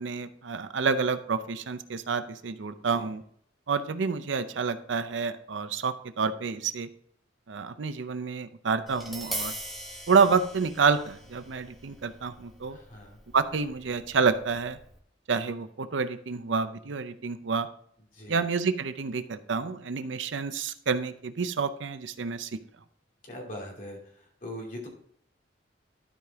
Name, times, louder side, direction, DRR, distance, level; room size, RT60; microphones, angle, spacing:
voice 1, 0.0-3.2 3.7-6.9 7.5-9.5 10.1-12.8 13.3-14.8 15.3-17.7 18.3-22.6, right 5 dB, 75° right, 11 dB, 0.6 m, -28 dB
voice 2, 2.7-3.0 12.7-13.2 18.1-18.4 23.2-24.0 24.4-24.9, left 1 dB, 45° left, -2 dB, 2.6 m, -41 dB
Tap, 8.9-15.0, right 1 dB, ahead, 1.3 m, -41 dB
12.5 x 5.0 x 3.5 m, 0.63 s
head